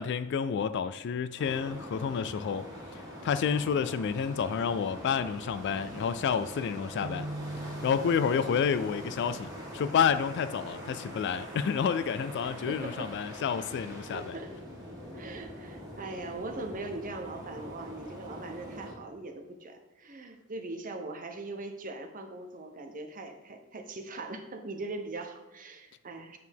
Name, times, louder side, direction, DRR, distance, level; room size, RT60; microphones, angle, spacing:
voice 1, 0.0-2.7 2.9-7.3 7.8-14.3, left 7 dB, 55° left, 0.3 m, -29 dB
sound 1, 1.4-18.9, equal, 15° right, 1.9 m, -43 dB
sound 2, 7.0-10.5, right 2 dB, 70° right, 0.5 m, -43 dB
voice 2, 12.4-13.1 14.1-14.5 15.1-26.4, right 2 dB, 40° right, 0.8 m, -41 dB
8.2 x 4.6 x 3.5 m
head